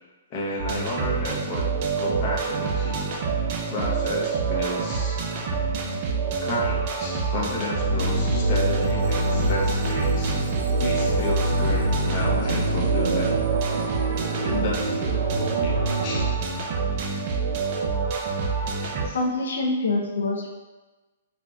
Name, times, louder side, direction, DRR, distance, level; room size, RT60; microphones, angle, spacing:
voice 1, 0.3-1.7 2.0-3.1 3.7-5.3 6.4-10.4 10.8-13.3 14.2-15.8 16.0-16.3 17.6-17.7 19.0-19.2, left 1 dB, 30° left, -4 dB, 0.6 m, -31 dB
sound 1, 0.6-19.1, right 5 dB, 35° right, 0.3 m, -27 dB
sound 2, 7.9-16.3, equal, 90° right, 0.5 m, -26 dB
voice 2, 19.1-20.5, left 2 dB, 80° left, 0 dB, 0.4 m, -25 dB
3.8 x 2.2 x 2.4 m, 1.2 s
hypercardioid pair, 165°, 0 cm